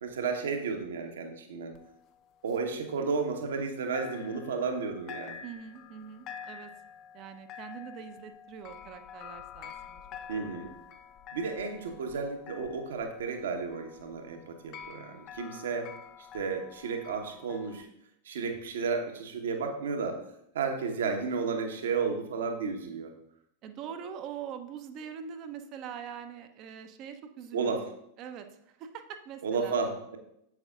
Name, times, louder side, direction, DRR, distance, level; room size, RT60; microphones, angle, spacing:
voice 1, 0.0-1.7 2.4-5.4 10.3-10.7 11.3-15.9 16.3-17.9 18.2-20.2 20.5-23.1 27.5-27.8 29.4-30.2, right 5 dB, 60° right, 4 dB, 1.2 m, -32 dB
sound 1, 1.7-3.7 3.9-17.8, left 8 dB, 35° left, 0.5 m, -48 dB
voice 2, 5.4-6.7 7.1-10.0 10.3-10.6 23.6-27.8 28.2-29.8, right 8 dB, 40° right, 7 dB, 0.7 m, -43 dB
9.6 x 7.9 x 2.5 m, 0.78 s
figure-of-eight pair, 90°, 0 cm